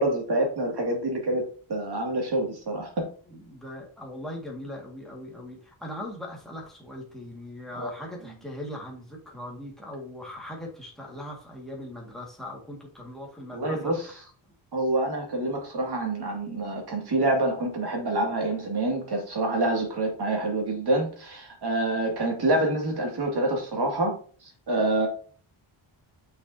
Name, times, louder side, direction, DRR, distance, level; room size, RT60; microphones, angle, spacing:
voice 1, 0.0-1.4 1.7-3.1 7.8-7.9 13.5-14.0 14.7-24.2 24.7-25.1, right 2 dB, 50° right, 1 dB, 2.3 m, -26 dB
voice 2, 3.3-14.3, left 1 dB, ahead, -2 dB, 1.8 m, -40 dB
6.5 x 6.1 x 2.7 m, 0.42 s
wide cardioid pair, 170°, 49 cm